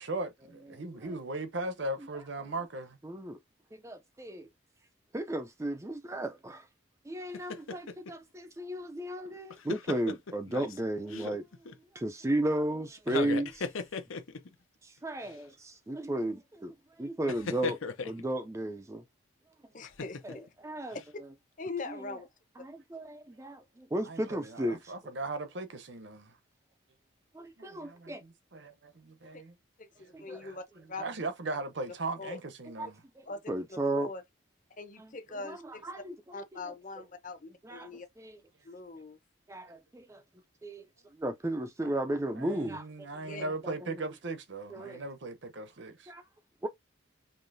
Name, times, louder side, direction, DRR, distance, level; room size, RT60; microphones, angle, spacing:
voice 1, 0.0-3.0 24.0-26.4 27.6-29.5 30.0-30.6 31.0-33.0 41.8-41.9 42.4-46.1, right 2 dB, 60° right, 0.8 m, -38 dB
voice 2, 3.0-3.4 3.7-4.5 5.1-6.7 7.1-11.4 11.9-13.7 14.8-17.8 18.0-19.0 20.2-20.4 20.6-21.0 22.6-24.9 27.3-28.2 30.1-30.4 32.8-32.9 33.2-34.1 35.5-36.1 37.6-37.9 38.2-38.4 39.5-40.2 40.6-40.8 41.2-42.8 43.4-43.7 44.7-45.0 46.1-46.2 46.6-46.7, right 1 dB, 15° right, 0.4 m, -34 dB
sound 1, 7.3-8.1 9.3-10.8 11.1-11.8 13.0-14.5 15.2-15.4 17.3-18.2 19.8-20.5 20.9-21.0, left 4 dB, 80° left, 0.7 m, -37 dB
voice 3, 19.7-20.5 21.6-22.3 29.8-31.0 32.2-32.4 33.3-34.2 34.8-35.9 36.3-38.1 38.6-39.2 43.2-43.4, left 3 dB, 40° left, 0.8 m, -42 dB
5.4 x 3.0 x 2.6 m
head